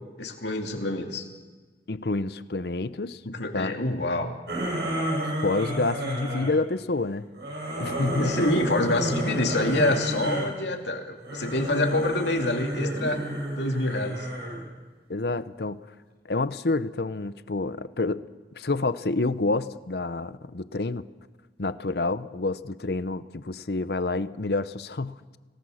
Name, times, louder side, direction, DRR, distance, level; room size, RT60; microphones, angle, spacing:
voice 1, 0.2-1.3 3.2-4.3 8.2-13.2 13.5-14.3, left 1 dB, 80° left, 3 dB, 2.5 m, -26 dB
voice 2, 1.9-3.2 3.5-3.7 5.4-7.3 7.8-8.5 15.1-15.8 16.2-18.2 18.6-21.0 21.6-25.4, left 3 dB, 65° left, 14 dB, 0.8 m, -28 dB
sound 1, 4.5-6.5 7.3-10.5 11.2-14.6, right 1 dB, 65° right, 7.7 m, -31 dB
26.0 x 18.5 x 6.4 m, 1.3 s
head